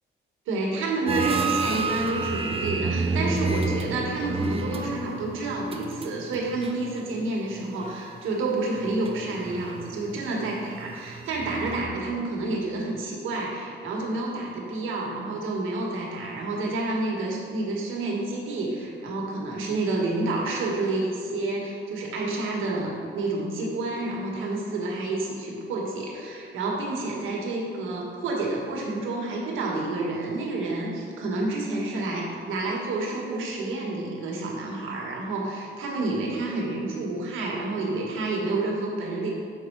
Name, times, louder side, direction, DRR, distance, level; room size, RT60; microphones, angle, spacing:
voice 1, 0.5-39.3, right 2 dB, 80° right, -1 dB, 1.6 m, -29 dB
sound 1, 1.1-7.3 7.6-8.2 8.8-11.8, right 3 dB, 30° right, 0.7 m, -30 dB
7.0 x 5.5 x 4.6 m, 2.3 s
cardioid pair, 90°, 20 cm